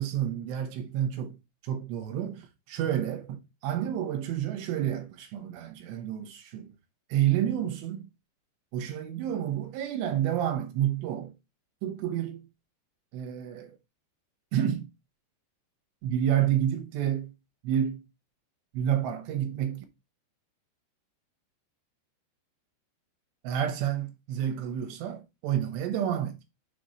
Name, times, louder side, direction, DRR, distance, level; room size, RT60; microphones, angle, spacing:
voice 1, 0.0-1.4 1.6-6.7 7.1-8.1 8.7-11.3 11.8-12.5 13.1-13.8 14.5-14.9 16.0-17.3 17.6-18.0 18.7-19.8 23.4-26.4, right 10 dB, 75° right, 3.0 m, -29 dB
7.0 x 3.0 x 5.2 m
omnidirectional pair, 5.3 m